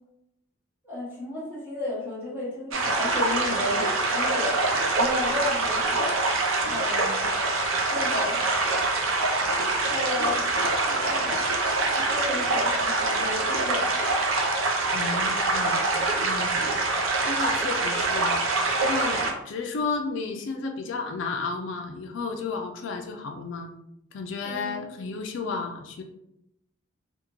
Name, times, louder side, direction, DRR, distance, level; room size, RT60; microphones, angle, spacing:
voice 1, 0.8-4.6 4.9-6.2 6.7-7.2 7.9-8.5 9.8-10.4 10.8-11.5 12.0-14.1 24.4-24.8, left 2 dB, 10° right, -7 dB, 1.1 m, -33 dB
sound 1, 2.7-19.3, right 3 dB, 75° right, 0.6 m, -25 dB
voice 2, 14.9-15.8 16.2-16.7 17.2-18.4 18.8-23.7 24.1-26.0, left 4 dB, 65° left, 3 dB, 0.3 m, -32 dB
3.4 x 2.1 x 3.0 m, 0.83 s
head